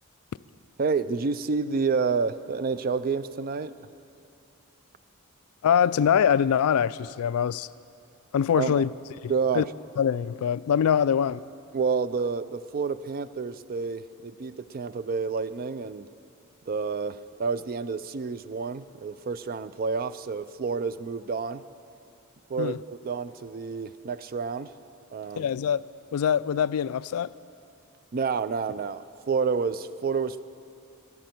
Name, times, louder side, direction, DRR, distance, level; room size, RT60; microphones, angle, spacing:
voice 1, 0.8-3.7 8.6-8.8 9.3-9.7 11.7-16.1 16.7-21.6 22.5-24.7 25.1-25.5 28.1-30.4, right 5 dB, 40° right, 0.4 m, -29 dB
voice 2, 5.6-7.7 8.3-8.9 9.2-9.6 10.0-11.4 22.6-22.8 25.4-25.8 26.1-27.3, left 8 dB, 80° left, 0.3 m, -24 dB
13.5 x 11.0 x 9.2 m
head